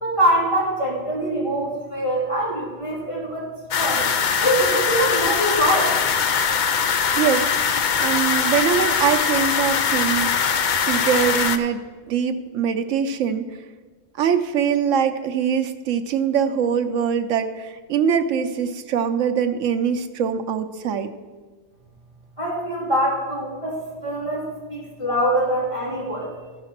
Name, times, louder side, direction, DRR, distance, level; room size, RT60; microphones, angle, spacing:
voice 1, 0.0-3.5 3.7-4.0 4.4-6.0 22.4-26.3, right 1 dB, 25° left, -6 dB, 2.7 m, -23 dB
sound 1, 3.7-11.6, left 6 dB, 50° left, 0.6 m, -21 dB
voice 2, 7.2-7.5 8.0-10.3 10.7-13.5 14.2-21.1, right 7 dB, 90° right, 7 dB, 1.0 m, -23 dB
14.0 x 5.6 x 5.9 m, 1.4 s
omnidirectional pair, 1.3 m